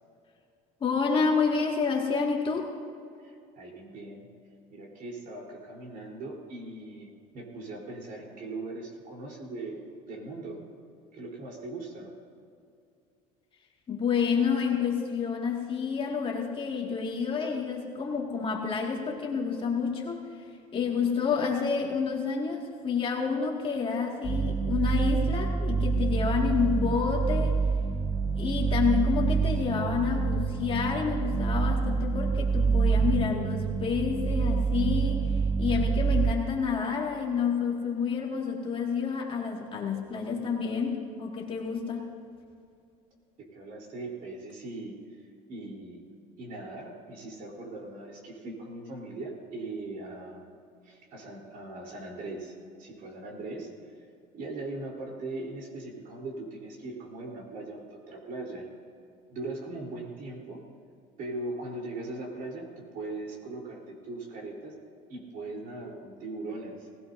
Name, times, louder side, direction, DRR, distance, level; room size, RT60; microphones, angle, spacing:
voice 1, 0.8-2.7 13.9-20.2 20.7-27.6 28.4-35.2 35.6-42.1, left 5 dB, 30° left, -1 dB, 2.2 m, -29 dB
voice 2, 3.2-4.3 4.7-9.8 10.1-10.6 11.1-12.1 43.4-45.2 45.5-46.1 46.4-50.5 50.8-52.5 52.8-53.7 54.3-58.7 59.3-60.6 61.2-64.7 65.1-66.9, right 2 dB, 55° right, -1 dB, 3.9 m, -40 dB
sound 1, 24.2-36.3, right 5 dB, 15° right, 0.4 m, -27 dB
19.5 x 16.5 x 2.7 m, 2.4 s
cardioid pair, 125°, 18 cm